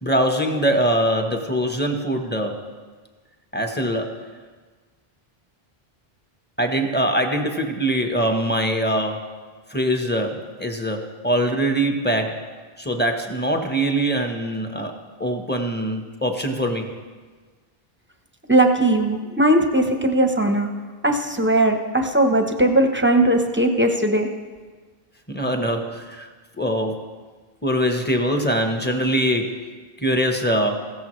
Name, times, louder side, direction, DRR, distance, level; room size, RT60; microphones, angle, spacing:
voice 1, 0.0-2.6 3.5-4.1 6.6-9.2 9.7-12.4 12.8-14.9 15.2-16.9 25.3-26.3 26.6-27.1 27.6-29.6 30.0-30.8, right 1 dB, 10° left, 4 dB, 1.0 m, -23 dB
voice 2, 18.5-20.7 21.0-24.3, right 1 dB, 10° right, 4 dB, 0.8 m, -19 dB
15.5 x 14.0 x 3.2 m, 1.4 s
omnidirectional pair, 1.0 m